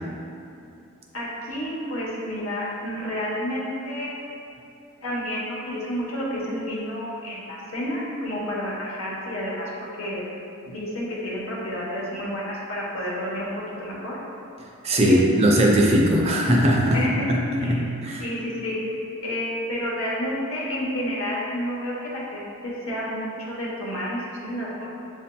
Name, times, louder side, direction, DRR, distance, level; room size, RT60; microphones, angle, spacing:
voice 1, 1.1-4.3 5.0-9.7 10.0-10.2 10.7-13.5 13.8-14.2 15.0-15.2 16.9-17.3 17.6-17.8 18.2-18.8 19.2-24.9, equal, 90° left, -5 dB, 1.0 m, -30 dB
voice 2, 14.8-17.4 17.7-18.2, equal, 30° right, -1 dB, 0.4 m, -19 dB
7.0 x 2.7 x 2.2 m, 2.6 s
head